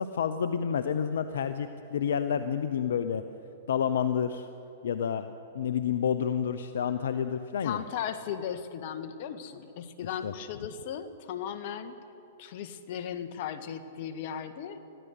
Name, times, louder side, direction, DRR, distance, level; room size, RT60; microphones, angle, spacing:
voice 1, 0.0-3.2 3.7-4.5 4.8-5.3 5.5-7.8 10.2-10.3, left 8 dB, 75° left, 11 dB, 0.8 m, -29 dB
voice 2, 7.6-12.0 12.4-14.8, left 8 dB, 55° left, 10 dB, 1.7 m, -37 dB
21.5 x 15.0 x 8.3 m, 2.7 s
hypercardioid pair, 120°, 0 cm